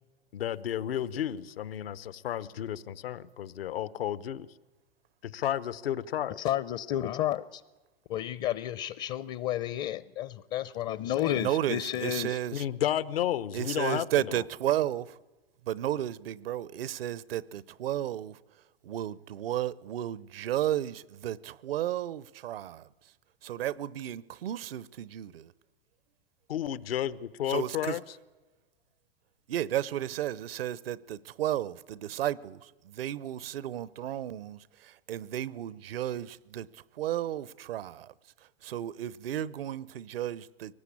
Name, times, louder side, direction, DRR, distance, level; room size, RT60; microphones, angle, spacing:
voice 1, 0.3-4.5 5.2-6.4 12.5-14.0 26.5-28.0, left 11 dB, 75° left, 1.0 m, -32 dB
voice 2, 6.4-7.6 8.1-12.4, left 12 dB, 35° left, 0.7 m, -31 dB
voice 3, 11.3-12.7 13.5-15.2 15.6-18.4 18.8-23.1 23.4-25.5 27.5-28.0 29.5-40.7, right 12 dB, 70° right, 0.8 m, -33 dB
22.5 x 18.5 x 8.6 m
hypercardioid pair, 120°, 30 cm